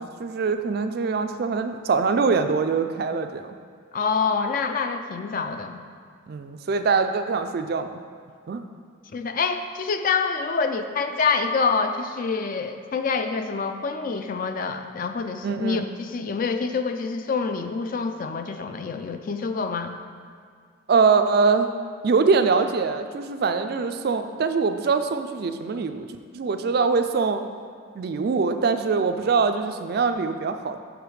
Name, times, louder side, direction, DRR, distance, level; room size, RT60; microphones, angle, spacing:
voice 1, 0.0-3.6 6.3-8.0 8.5-8.6 15.4-15.8 20.9-21.7 22.0-26.1 26.3-27.4 28.0-30.8, right 4 dB, 50° right, 8 dB, 0.3 m, -23 dB
voice 2, 3.9-5.8 9.1-19.9, left 5 dB, 40° left, 7 dB, 0.3 m, -26 dB
6.2 x 5.0 x 4.7 m, 2.1 s
head